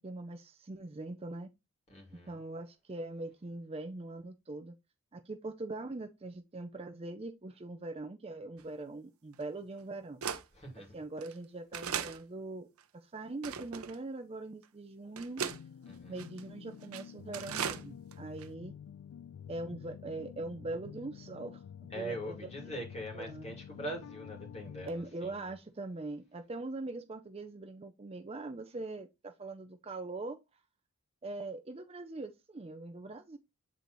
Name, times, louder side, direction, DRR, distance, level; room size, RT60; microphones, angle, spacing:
voice 1, 0.0-1.5 2.3-4.7 5.1-10.2 10.9-12.7 12.9-15.4 16.1-18.7 19.5-21.6 22.0-22.3 23.1-23.5 24.9-30.4 31.2-33.4, right 2 dB, 25° right, 0.4 m, -42 dB
voice 2, 1.9-2.4 10.5-11.0 15.9-16.2 21.9-25.4, right 1 dB, 30° left, 2.5 m, -42 dB
sound 1, 8.6-8.7 9.4-9.5 10.2-10.4 11.2-11.3 11.7-12.2 12.8-12.9 13.4-14.0 14.6-14.7 15.2-15.6 16.2-16.4 16.8-17.0 17.3-17.8 18.1-18.2 18.4-18.5, right 7 dB, 75° right, 0.7 m, -37 dB
sound 2, 15.5-24.9, left 8 dB, 75° left, 0.3 m, -49 dB
8.2 x 4.0 x 3.0 m
head